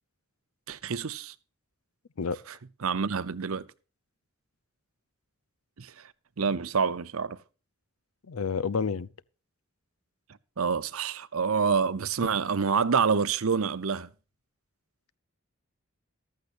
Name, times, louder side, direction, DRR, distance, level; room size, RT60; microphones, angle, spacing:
voice 1, 0.7-1.3 2.5-2.6 2.8-3.7 5.8-6.1 6.4-7.4 10.6-14.1, right 5 dB, 80° right, 0.7 m, -27 dB
voice 2, 8.3-9.1, left 5 dB, 85° left, 0.6 m, -29 dB
14.5 x 13.5 x 2.6 m
head